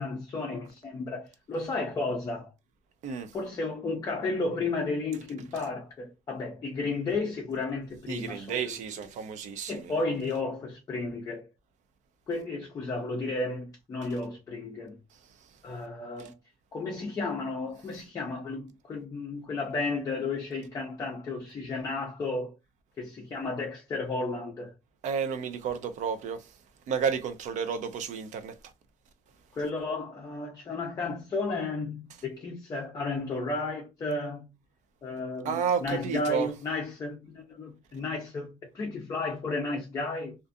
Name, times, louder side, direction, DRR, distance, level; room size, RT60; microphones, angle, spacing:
voice 1, 0.0-2.5 3.3-8.7 9.7-11.5 12.3-15.0 15.6-16.3 16.7-22.5 23.0-24.7 29.5-34.5 35.0-40.4, left 3 dB, 25° left, 0.5 m, -33 dB
voice 2, 3.0-3.4 8.1-9.9 16.2-16.3 25.0-26.5 26.9-28.6 35.4-36.5, right 7 dB, 55° right, 0.4 m, -31 dB
2.4 x 2.4 x 2.4 m
cardioid pair, 180°, 15 cm